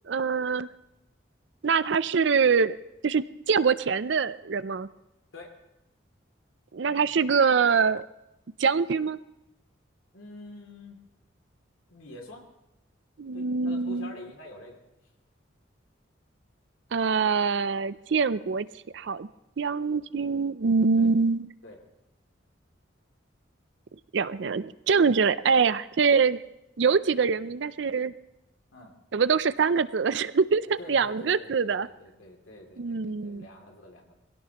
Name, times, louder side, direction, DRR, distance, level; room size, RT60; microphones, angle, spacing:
voice 1, 0.1-0.7 1.6-2.8 3.0-4.9 6.7-8.1 8.6-9.2 13.2-14.1 16.9-18.7 18.9-19.3 19.6-21.5 24.1-26.4 26.8-28.1 29.1-31.9 32.8-33.5, right 5 dB, 65° right, 15 dB, 0.5 m, -24 dB
voice 2, 10.1-11.0 11.9-12.4 13.3-14.8 21.0-21.1 21.6-21.8 24.4-24.6 28.7-28.9 30.8-34.1, left 1 dB, 85° left, 1 dB, 2.7 m, -46 dB
22.0 x 17.0 x 3.0 m, 0.89 s
head